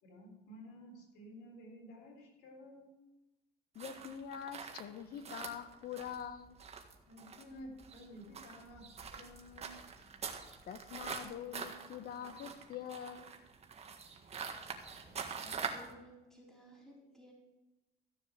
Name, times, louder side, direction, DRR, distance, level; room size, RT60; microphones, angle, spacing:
voice 1, 0.0-2.9 7.1-9.9, equal, 85° left, 0 dB, 4.0 m, -53 dB
voice 2, 3.7-6.6 10.7-13.3, left 8 dB, 65° left, 10 dB, 1.2 m, -44 dB
sound 1, 3.8-15.9, right 5 dB, 40° right, 1.6 m, -45 dB
voice 3, 14.7-17.3, equal, 5° left, -4 dB, 4.2 m, -57 dB
14.5 x 7.0 x 6.1 m, 1.0 s
cardioid pair, 110°, 17 cm